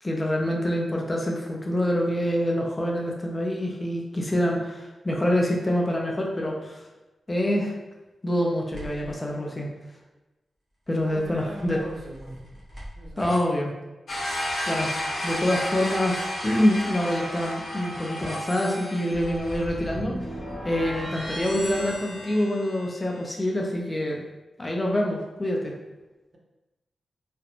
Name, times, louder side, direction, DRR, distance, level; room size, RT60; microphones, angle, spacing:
voice 1, 0.0-6.8 7.3-7.8 8.2-9.7 10.9-11.8 13.2-13.7 14.7-14.9 15.2-20.4 20.6-24.2 24.6-25.7, left 1 dB, 20° left, -1 dB, 0.3 m, -26 dB
sound 1, 8.7-9.1 11.0-13.4 16.9-23.3, equal, 5° right, 0.8 m, -38 dB
voice 2, 11.0-12.6 13.0-13.4, right 1 dB, 50° right, -2 dB, 0.6 m, -39 dB
sound 2, 14.1-20.0, left 1 dB, 55° left, 0.7 m, -32 dB
2.4 x 2.0 x 2.8 m, 1.1 s
wide cardioid pair, 125°, 0 cm